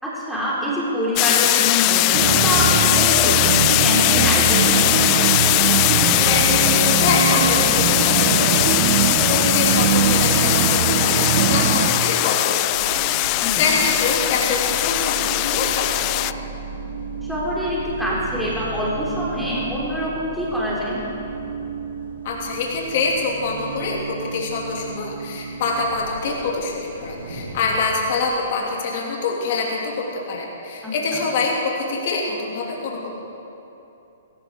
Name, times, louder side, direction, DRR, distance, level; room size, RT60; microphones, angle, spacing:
voice 1, 0.0-5.1 13.4-13.6 17.3-21.0 30.8-30.9, equal, ahead, -8 dB, 3.9 m, -25 dB
sound 1, 1.2-16.3, left 20 dB, 35° left, 0.3 m, -20 dB
sound 2, 2.1-11.9, right 7 dB, 50° right, 1.2 m, -21 dB
voice 2, 6.3-16.3 22.2-33.1, left 3 dB, 55° left, -2 dB, 3.2 m, -25 dB
sound 3, 12.7-28.0, right 4 dB, 85° right, 2.8 m, -34 dB
16.0 x 15.5 x 4.8 m, 2.9 s
hypercardioid pair, 125°, 0 cm